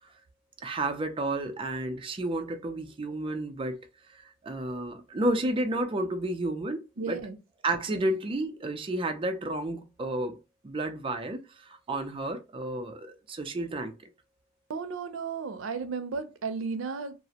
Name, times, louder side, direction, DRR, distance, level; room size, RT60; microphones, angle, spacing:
voice 1, 0.6-3.8 4.1-7.2 7.6-10.4 10.6-13.9, right 1 dB, 25° right, 0.4 m, -31 dB
voice 2, 7.0-7.4 7.9-8.0 14.7-17.1, right 5 dB, 90° right, 0.5 m, -34 dB
2.4 x 2.0 x 2.7 m
head